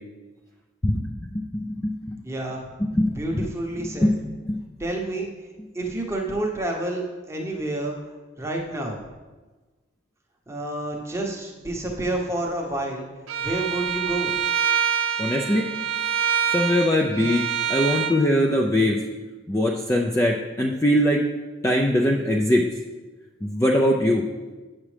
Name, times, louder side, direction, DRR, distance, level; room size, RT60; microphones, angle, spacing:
voice 1, 0.8-2.2 2.8-3.1 3.8-4.1 4.5-4.6 15.2-15.7 16.5-17.4 17.7-19.0 19.5-21.2 21.6-22.6 23.4-24.2, left 1 dB, 15° left, 0 dB, 0.3 m, -22 dB
voice 2, 2.2-2.7 3.1-4.1 4.8-5.3 5.7-7.9 8.4-9.0 10.5-13.0 13.4-14.4, right 2 dB, 15° right, -1 dB, 0.8 m, -29 dB
Bowed string instrument, 13.3-18.2, right 7 dB, 80° right, 0.6 m, -25 dB
8.3 x 6.0 x 3.3 m, 1.3 s
head